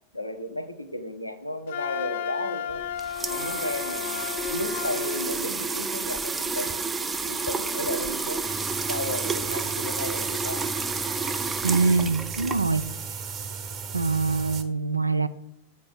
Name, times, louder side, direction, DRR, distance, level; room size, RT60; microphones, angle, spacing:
voice 1, 0.1-2.8 3.2-6.8 7.2-8.4 8.9-10.6, left 1 dB, 85° left, 7 dB, 0.7 m, -34 dB
Wind instrument woodwind instrument, 1.7-5.4, left 9 dB, 55° left, 0.4 m, -33 dB
sound 1, 2.7-13.0, right 4 dB, 15° right, 0.5 m, -30 dB
sound 2, 8.4-14.6, right 6 dB, 30° right, 1.0 m, -36 dB
voice 2, 11.6-12.9 13.9-15.3, right 4 dB, 85° right, 13 dB, 0.4 m, -24 dB
8.3 x 4.2 x 5.9 m, 0.83 s
figure-of-eight pair, 90°, 0 cm